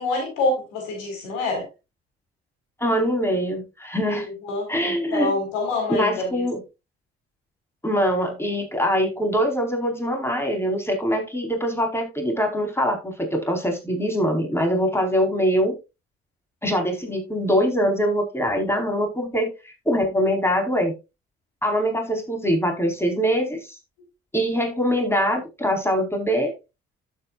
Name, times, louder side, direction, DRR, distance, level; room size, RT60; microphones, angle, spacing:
voice 1, 0.0-1.6 4.0-6.4, left 2 dB, 80° left, 2 dB, 4.7 m, -27 dB
voice 2, 2.8-4.3 4.7-5.3 5.9-6.6 7.8-15.7 16.6-20.9 21.6-23.8 24.3-26.5, equal, 10° left, 2 dB, 4.5 m, -23 dB
11.5 x 8.7 x 2.5 m, 0.26 s
hypercardioid pair, 50°, 30 cm